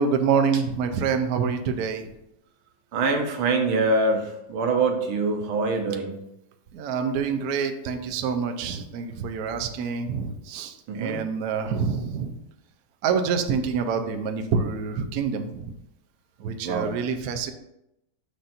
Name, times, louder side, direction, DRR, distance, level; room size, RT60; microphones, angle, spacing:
voice 1, 0.0-2.1 6.7-12.4 13.0-15.7 16.4-17.5, right 6 dB, 70° right, 6 dB, 0.8 m, -26 dB
voice 2, 2.9-6.1 10.9-11.2 16.6-16.9, right 3 dB, 90° right, 3 dB, 1.8 m, -24 dB
6.8 x 2.6 x 5.6 m, 0.84 s
omnidirectional pair, 2.3 m